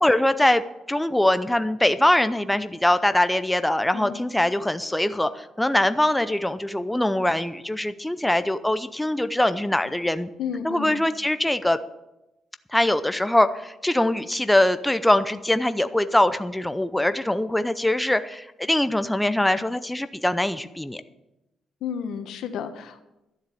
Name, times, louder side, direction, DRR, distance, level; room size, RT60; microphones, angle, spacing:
voice 1, 0.0-0.6 0.9-10.3 10.6-11.8 12.7-21.0, left 1 dB, 5° left, 11 dB, 0.6 m, -22 dB
voice 2, 10.4-11.0 21.8-23.0, left 7 dB, 80° left, 7 dB, 1.4 m, -32 dB
12.5 x 7.4 x 8.4 m, 0.94 s
cardioid pair, 90°, 0 cm